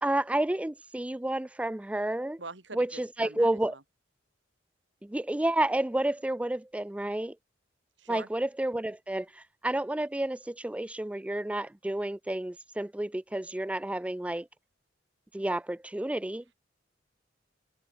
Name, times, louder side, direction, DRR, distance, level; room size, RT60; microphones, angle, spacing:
voice 1, 0.0-2.4 2.7-3.7 5.0-7.3 8.1-14.5 15.3-16.5, right 1 dB, 5° right, 0.3 m, -30 dB
voice 2, 2.4-3.8 8.0-8.3, right 3 dB, 70° right, 3.2 m, -43 dB
head